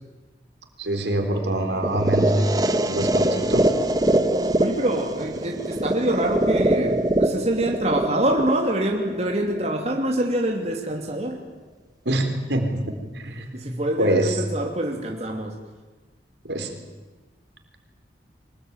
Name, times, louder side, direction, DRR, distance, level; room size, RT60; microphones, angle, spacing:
voice 1, 0.8-2.5 2.8-3.6 12.1-12.8 13.1-13.5 14.0-14.4 16.4-16.8, right 1 dB, 75° right, 5 dB, 4.0 m, -24 dB
sound 1, 1.3-7.5, left 1 dB, 15° left, 4.9 m, -43 dB
sound 2, 1.8-9.8, right 1 dB, 20° right, 1.3 m, -23 dB
voice 2, 4.6-11.4 13.2-15.6, right 1 dB, 35° right, 1 dB, 2.9 m, -25 dB
24.0 x 20.5 x 9.5 m, 1.2 s
head